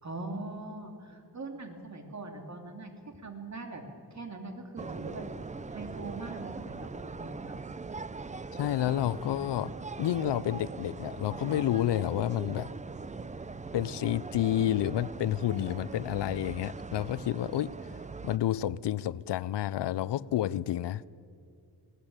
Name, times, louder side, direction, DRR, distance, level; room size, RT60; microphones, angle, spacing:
voice 1, 0.0-3.8 4.1-5.3 5.7-7.6, right 2 dB, 40° right, 3.0 m, -42 dB
sound 1, 4.8-18.4, right 4 dB, 20° right, 0.5 m, -41 dB
voice 2, 8.6-9.7 10.0-12.7 13.7-17.8 18.2-21.1, left 12 dB, 85° left, 0.6 m, -30 dB
20.5 x 18.0 x 8.8 m
wide cardioid pair, 120°, 41 cm